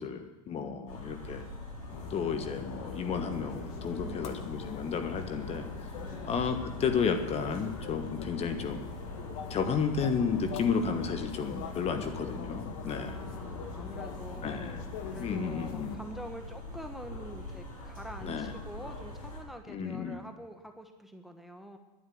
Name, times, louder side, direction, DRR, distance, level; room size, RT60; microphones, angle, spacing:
voice 1, 0.0-1.4 2.1-5.9 6.2-8.8 9.5-13.2 14.4-14.8 15.2-16.0 18.2-18.5 19.7-20.2, left 6 dB, 35° left, 8 dB, 1.5 m, -32 dB
sound 1, 0.9-19.4, left 1 dB, 85° left, 5.6 m, -43 dB
sound 2, 1.9-16.0, left 7 dB, 65° left, 1.5 m, -43 dB
voice 2, 3.9-4.5 6.0-6.3 12.8-21.8, equal, ahead, 6 dB, 1.2 m, -46 dB
11.0 x 9.8 x 7.8 m, 1.1 s
hypercardioid pair, 95°, 17 cm